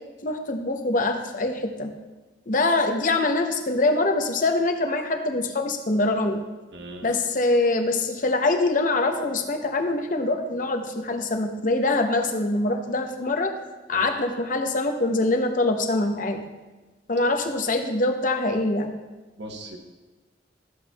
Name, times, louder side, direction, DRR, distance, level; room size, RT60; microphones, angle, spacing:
voice 1, 0.2-1.9 2.5-6.4 7.0-13.5 13.9-16.4 17.1-18.9, left 2 dB, 45° left, 5 dB, 0.8 m, -24 dB
voice 2, 6.7-7.1 13.9-14.2 19.4-19.8, right 1 dB, 70° right, 3 dB, 1.1 m, -39 dB
12.5 x 7.6 x 2.3 m, 1.2 s
head